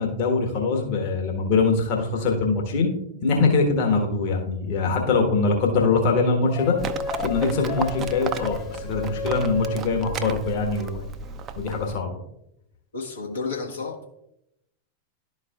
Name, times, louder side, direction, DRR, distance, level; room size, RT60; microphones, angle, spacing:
voice 1, 0.0-2.9 3.2-6.8 7.2-11.1 11.6-12.1, left 4 dB, 50° left, 1 dB, 1.3 m, -23 dB
sound 1, 6.5-11.0, left 4 dB, 30° left, 0.9 m, -33 dB
Livestock farm animals working animals, 6.8-12.0, right 5 dB, 30° right, 0.5 m, -34 dB
voice 2, 12.9-14.1, left 4 dB, 75° left, -1 dB, 1.2 m, -31 dB
11.5 x 4.7 x 2.4 m, 0.79 s
figure-of-eight pair, 90°, 0 cm